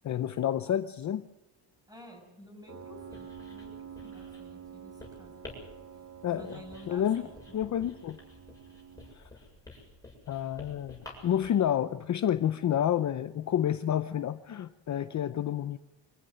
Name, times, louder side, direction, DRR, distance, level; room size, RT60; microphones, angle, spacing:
voice 1, 0.0-1.3 6.2-6.6 6.9-7.3 7.5-8.2 9.1-9.2 10.3-15.8, left 10 dB, 40° left, 11 dB, 0.6 m, -29 dB
voice 2, 1.9-5.4 6.3-7.3, equal, 10° right, 2 dB, 6.6 m, -51 dB
Piano, 2.7-9.2, right 8 dB, 40° right, 1.7 m, -48 dB
Writing, 2.9-11.6, left 2 dB, 10° left, 7.4 m, -51 dB
25.0 x 15.0 x 7.8 m, 1.0 s
cardioid pair, 165°, 44 cm